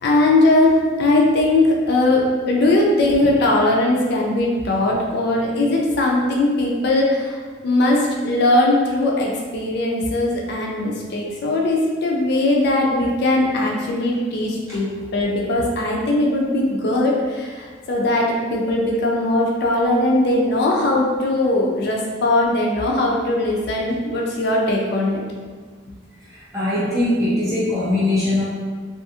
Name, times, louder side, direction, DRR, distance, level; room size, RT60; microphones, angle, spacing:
voice 1, 0.0-25.2, left 2 dB, 55° left, -1 dB, 0.4 m, -19 dB
voice 2, 26.3-28.4, left 1 dB, 15° right, -10 dB, 0.9 m, -21 dB
2.4 x 2.4 x 2.6 m, 1.5 s
head